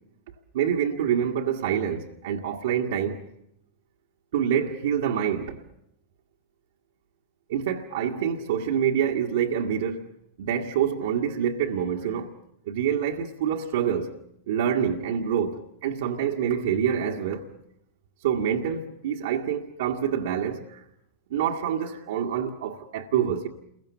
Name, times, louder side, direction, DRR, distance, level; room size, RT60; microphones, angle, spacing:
voice 1, 0.5-3.2 4.3-5.6 7.5-10.1 10.4-12.3 12.7-14.1 14.5-17.5 18.2-20.8 21.3-23.5, right 8 dB, 55° right, 1.9 m, -26 dB
29.5 x 22.5 x 7.0 m
figure-of-eight pair, 90°, 0 cm